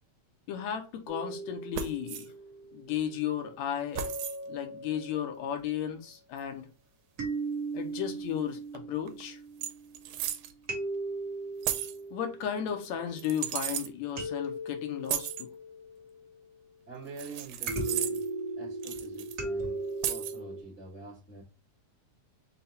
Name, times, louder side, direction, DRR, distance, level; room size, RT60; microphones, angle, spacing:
voice 1, 0.5-2.3 2.7-4.0 4.5-6.7 7.7-9.4 12.1-15.5, left 9 dB, 75° left, 2.0 m, -34 dB
sound 1, 1.1-3.1 3.9-5.5 7.2-10.1 10.7-13.3 14.2-16.4 17.7-20.6, right 2 dB, 60° right, 0.8 m, -38 dB
Punched Glass, 1.7-2.3 4.0-4.4 6.4-6.5 8.8-8.9 9.1-9.2 9.6-10.5 11.6-12.0 13.2-13.9 15.0-15.4 17.2-18.3 18.8-19.4 20.0-20.4, right 11 dB, 80° right, 2.0 m, -34 dB
voice 2, 16.9-18.2 18.6-21.4, right 3 dB, 10° left, 0.7 m, -46 dB
5.6 x 2.2 x 4.0 m
omnidirectional pair, 3.5 m